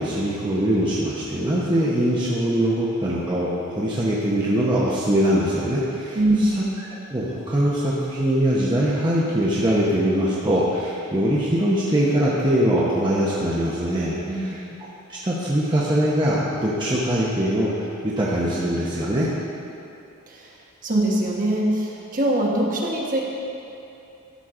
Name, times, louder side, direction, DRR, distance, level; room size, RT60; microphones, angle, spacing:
voice 1, 0.0-6.6 7.1-14.6 15.1-19.3, right 1 dB, 20° right, -7 dB, 0.9 m, -22 dB
voice 2, 6.1-6.6 14.3-14.6 20.3-20.5 20.8-23.2, right 1 dB, 40° right, -3 dB, 1.2 m, -22 dB
12.5 x 6.4 x 3.8 m, 2.9 s
head